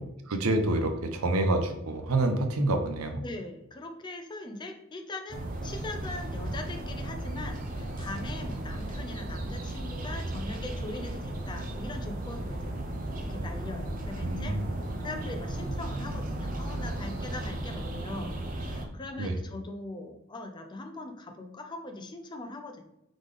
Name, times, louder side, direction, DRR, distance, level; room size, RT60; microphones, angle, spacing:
voice 1, 0.3-3.2 14.2-14.7 19.2-19.4, right 2 dB, 90° right, 5 dB, 0.7 m, -27 dB
voice 2, 3.2-12.8 13.2-14.6 15.0-22.8, left 2 dB, 20° left, 4 dB, 0.4 m, -41 dB
sound 1, 5.3-18.9, right 1 dB, 40° right, 0.6 m, -35 dB
3.9 x 3.3 x 3.5 m, 0.86 s
head